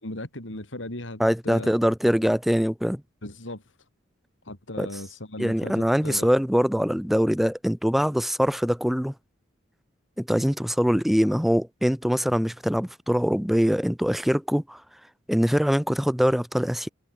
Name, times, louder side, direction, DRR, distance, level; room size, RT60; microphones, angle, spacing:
voice 1, 0.0-1.7 3.2-3.6 4.5-6.3, left 1 dB, 80° left, 4.5 m, -37 dB
voice 2, 1.2-3.0 4.8-4.9 5.4-9.1 10.2-14.8 15.3-16.9, equal, ahead, 0.4 m, -23 dB
head